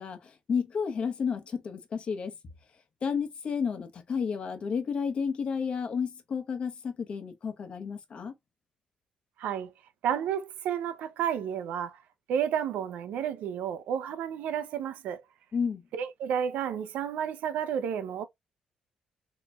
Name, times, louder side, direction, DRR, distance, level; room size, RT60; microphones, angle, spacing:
voice 1, 0.0-2.3 3.0-8.3 15.5-15.8, left 6 dB, 45° left, 1.0 m, -31 dB
voice 2, 9.4-9.7 10.0-12.0 12.3-15.2 15.9-18.2, right 9 dB, 85° right, 0.5 m, -31 dB
4.2 x 3.0 x 2.3 m
cardioid pair, 115°, 3 cm